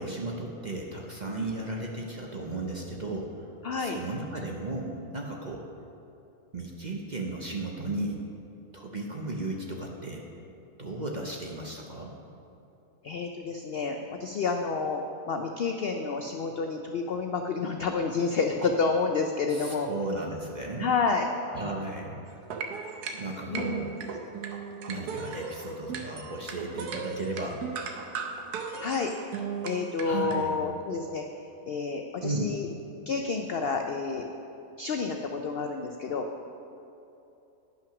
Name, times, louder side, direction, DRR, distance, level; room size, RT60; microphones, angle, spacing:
voice 1, 0.0-3.3 3.8-5.6 6.5-8.2 8.7-10.2 10.8-12.1 18.6-18.7 19.5-20.9 21.4-22.2 23.1-23.9 24.9-27.6 30.0-30.6 32.2-32.5, right 2 dB, 40° right, 0 dB, 0.7 m, -35 dB
voice 2, 3.6-4.0 13.0-19.9 20.8-21.3 23.5-23.8 28.8-29.1 29.6-31.2 31.7-32.7 33.1-34.2 34.8-36.3, left 4 dB, 75° left, 4 dB, 0.5 m, -29 dB
sound 1, 22.3-30.4, right 6 dB, 90° right, 1.4 m, -36 dB
10.5 x 5.8 x 5.9 m, 2.9 s
omnidirectional pair, 1.6 m